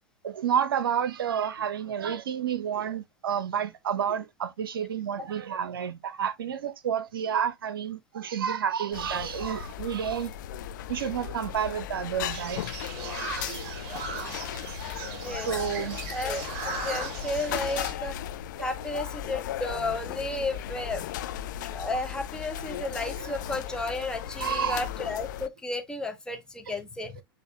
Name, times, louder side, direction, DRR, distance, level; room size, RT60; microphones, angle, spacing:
voice 1, 0.2-10.3 10.9-12.6 13.5-13.8 14.1-14.4 15.3-16.0 23.2-23.3 24.4-24.9, right 8 dB, 65° right, 0.7 m, -30 dB
sound 1, 8.9-25.5, left 11 dB, 50° left, 0.4 m, -36 dB
sound 2, 12.2-17.9, right 7 dB, 45° right, 1.0 m, -38 dB
voice 2, 16.1-18.2 18.6-21.0 21.3-27.2, left 2 dB, 5° left, 0.9 m, -33 dB
8.0 x 2.8 x 2.3 m
figure-of-eight pair, 95°, 13 cm